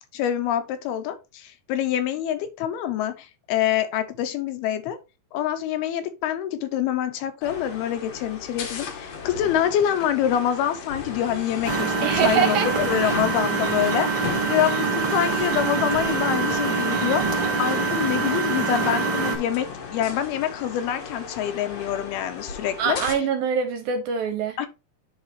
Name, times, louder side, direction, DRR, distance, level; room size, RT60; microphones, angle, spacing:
voice 1, 0.1-5.0 5.3-17.3 17.6-23.0 24.6-24.7, left 10 dB, 85° left, 2.7 m, -26 dB
sound 1, 7.4-23.1, left 5 dB, 65° left, 1.6 m, -35 dB
Engine, 11.6-19.4, right 5 dB, 40° right, 1.9 m, -25 dB
voice 2, 12.0-12.7 13.0-13.1 22.8-24.6, right 7 dB, 75° right, 2.3 m, -24 dB
10.5 x 4.0 x 3.1 m
omnidirectional pair, 4.5 m